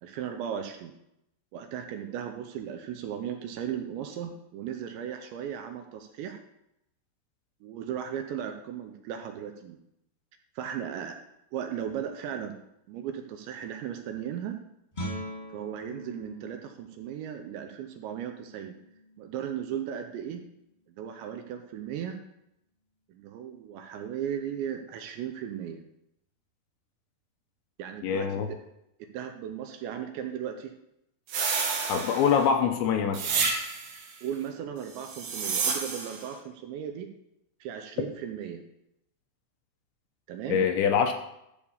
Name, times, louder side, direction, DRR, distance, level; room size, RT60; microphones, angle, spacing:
voice 1, 0.0-0.9 1.5-6.4 7.6-9.8 10.6-11.2 11.5-12.6 12.9-14.6 15.5-18.7 19.2-20.4 21.0-22.2 23.1-25.8 27.8-28.6 29.0-30.7 34.2-37.1 37.6-38.6 40.3-40.6, right 9 dB, 80° right, 5 dB, 2.8 m, -36 dB
Guitar, 14.9-20.5, equal, 15° left, 1.5 m, -43 dB
voice 2, 28.0-28.5 31.9-33.3 40.5-41.1, left 7 dB, 80° left, 6 dB, 2.9 m, -24 dB
sound 1, 31.3-32.5 33.1-34.0 35.0-36.2, right 5 dB, 60° right, 3.0 m, -30 dB
12.5 x 4.7 x 7.0 m, 0.82 s
omnidirectional pair, 5.6 m